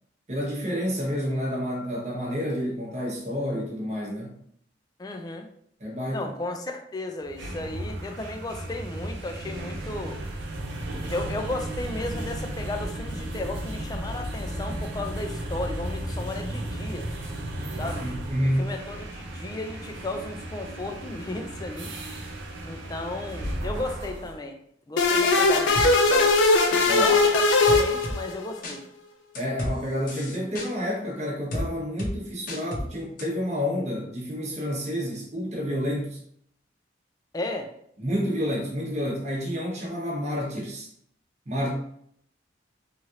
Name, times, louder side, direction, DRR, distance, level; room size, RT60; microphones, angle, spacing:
voice 1, 0.3-4.3 5.8-6.3 18.0-18.7 26.9-27.1 29.3-36.2 38.0-40.9 41.5-41.7, equal, 40° right, -3 dB, 0.9 m, -29 dB
voice 2, 5.0-5.5 6.1-10.2 11.1-17.1 17.8-18.1 18.6-21.9 22.6-24.6 24.9-26.3 27.0-28.8 37.3-37.7, left 2 dB, 20° left, 4 dB, 0.3 m, -34 dB
sound 1, 7.2-24.4, right 1 dB, 80° right, 0.6 m, -34 dB
sound 2, 25.0-28.6, left 3 dB, 85° left, 0.4 m, -20 dB
sound 3, 25.8-25.9 26.5-26.8 27.7-28.2 28.6-28.8 29.4-29.7 30.1-30.7 31.5-31.7 32.0-32.1 32.5-32.9 33.2-33.3, left 1 dB, 50° left, 0.7 m, -31 dB
3.1 x 2.4 x 2.7 m, 0.68 s
head